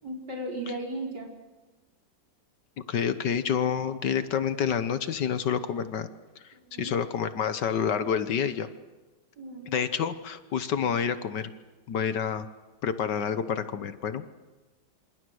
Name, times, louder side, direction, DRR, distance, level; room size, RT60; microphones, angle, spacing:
voice 1, 0.0-1.3 6.5-7.0 9.4-9.8, right 1 dB, 60° right, -1 dB, 5.9 m, -36 dB
voice 2, 2.9-6.1 6.8-8.7 9.7-11.5 11.9-12.5 12.8-14.2, left 7 dB, 65° left, 11 dB, 1.6 m, -28 dB
27.0 x 26.5 x 6.4 m, 1.2 s
omnidirectional pair, 2.1 m